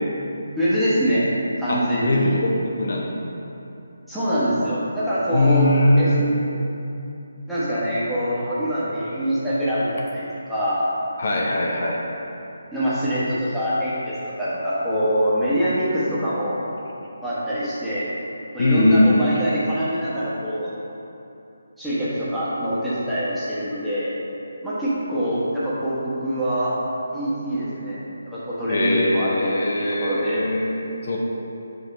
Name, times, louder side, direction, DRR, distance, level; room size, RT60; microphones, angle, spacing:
voice 1, 0.6-1.3 1.6-2.4 4.1-5.7 6.0-6.1 7.5-10.8 12.7-16.6 17.2-18.1 18.5-20.7 21.8-24.1 24.6-26.7 27.1-28.0 28.3-30.5, equal, ahead, -13 dB, 1.4 m, -24 dB
voice 2, 1.7-3.1 5.3-6.2 11.2-12.0 18.6-19.3 28.7-31.2, left 1 dB, 55° left, -1 dB, 0.8 m, -21 dB
5.2 x 4.4 x 5.4 m, 2.9 s
figure-of-eight pair, 150°, 0 cm